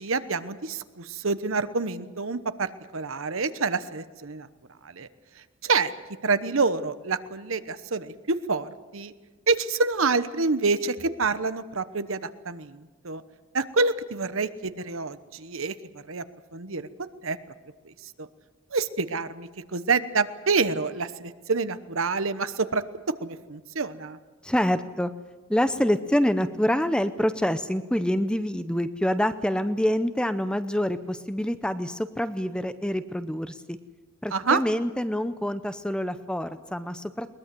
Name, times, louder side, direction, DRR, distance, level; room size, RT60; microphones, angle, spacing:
voice 1, 0.0-4.5 4.8-5.1 5.6-5.9 6.2-9.1 9.5-13.2 13.5-16.2 16.5-17.4 17.8-17.9 18.2-18.3 18.7-22.8 23.2-24.2 34.3-34.6, right 4 dB, 75° right, 12 dB, 1.0 m, -27 dB
voice 2, 24.4-25.1 25.5-33.8 34.2-37.3, equal, 5° left, 11 dB, 0.6 m, -26 dB
21.5 x 20.5 x 7.7 m, 1.3 s
head